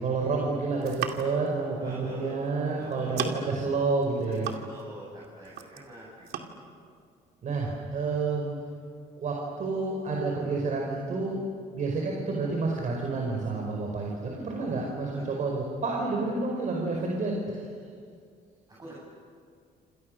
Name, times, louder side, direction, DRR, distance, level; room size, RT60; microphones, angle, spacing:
voice 1, 0.0-4.5 7.4-8.6 9.2-11.4 11.7-17.6, right 3 dB, 50° right, 0 dB, 5.1 m, -29 dB
sound 1, 0.7-1.5 2.5-2.6 2.9-3.6 4.0-5.0 5.2-5.9 6.3-6.5, right 9 dB, 70° right, 2.5 m, -36 dB
voice 2, 1.8-2.3 2.8-3.3 4.3-6.7 15.1-15.4 18.7-19.0, right 1 dB, 20° right, -6 dB, 8.0 m, -46 dB
28.0 x 28.0 x 6.6 m, 2.2 s
cardioid pair, 110°, 17 cm